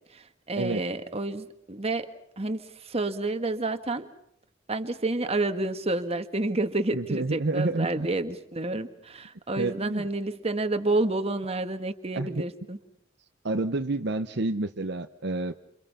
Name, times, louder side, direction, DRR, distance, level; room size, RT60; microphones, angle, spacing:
voice 1, 0.1-2.1 2.4-4.1 4.7-12.8, right 2 dB, 35° right, 8 dB, 1.8 m, -29 dB
voice 2, 6.9-8.1 9.6-10.1 12.1-12.4 13.4-15.5, right 2 dB, 60° right, 8 dB, 1.0 m, -29 dB
28.5 x 28.0 x 5.7 m, 0.73 s
head